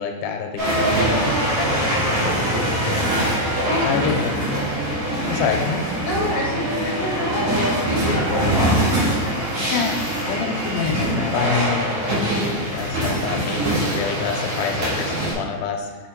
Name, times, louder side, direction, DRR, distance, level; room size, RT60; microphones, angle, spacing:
voice 1, 0.0-1.4 3.8-4.4 5.3-5.8 9.6-10.0 10.3-15.9, left 6 dB, 85° left, 3 dB, 2.1 m, -26 dB
sound 1, 0.6-15.3, right 1 dB, 65° right, 2.9 m, -23 dB
voice 2, 1.6-3.8 5.0-5.3 6.0-9.6, left 2 dB, 35° left, -5 dB, 1.6 m, -29 dB
6.8 x 4.3 x 4.4 m, 1.5 s
omnidirectional pair, 3.7 m